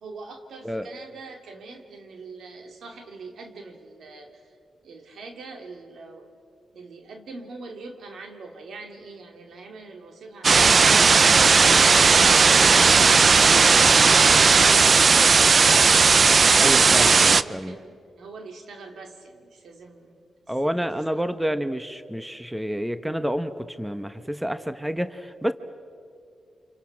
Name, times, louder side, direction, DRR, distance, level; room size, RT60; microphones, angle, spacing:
voice 1, 0.0-4.5 4.8-6.3 6.7-15.6 16.1-21.3, right 3 dB, 75° right, 4 dB, 2.7 m, -43 dB
sound 1, 10.4-17.4, right 5 dB, 50° right, 0.6 m, -16 dB
voice 2, 16.6-17.7 20.5-25.5, equal, 5° right, 11 dB, 1.1 m, -29 dB
30.0 x 27.0 x 5.9 m, 2.5 s
cardioid pair, 60°, 0 cm